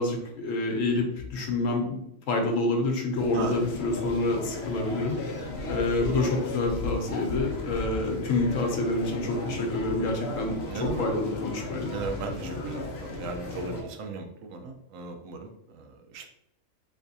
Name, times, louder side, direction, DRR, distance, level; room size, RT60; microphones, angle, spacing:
voice 1, 0.0-2.0 2.3-5.2 5.7-11.9, left 2 dB, 75° left, 2 dB, 1.1 m, -27 dB
sound 1, 3.1-13.8, left 2 dB, 60° left, 0.9 m, -35 dB
voice 2, 10.7-11.1 11.9-16.3, right 3 dB, 80° right, 4 dB, 1.0 m, -36 dB
3.4 x 3.1 x 2.6 m, 0.79 s
omnidirectional pair, 1.4 m